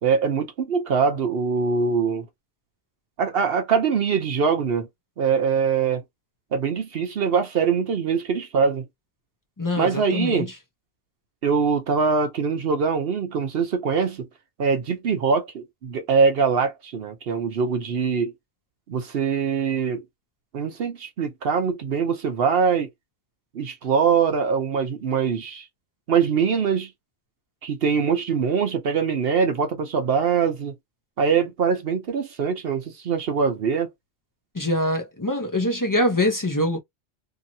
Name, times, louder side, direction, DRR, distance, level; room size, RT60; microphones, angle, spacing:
voice 1, 0.0-2.3 3.2-4.9 5.2-6.0 6.5-8.8 9.8-10.5 11.4-14.3 14.6-18.3 18.9-20.0 20.5-22.9 23.5-25.7 26.1-26.9 27.6-30.7 31.2-33.9, right 6 dB, 60° right, 0.8 m, -23 dB
voice 2, 9.6-10.5 34.5-36.8, left 1 dB, 25° left, 0.5 m, -24 dB
2.8 x 2.8 x 2.6 m
omnidirectional pair, 1.2 m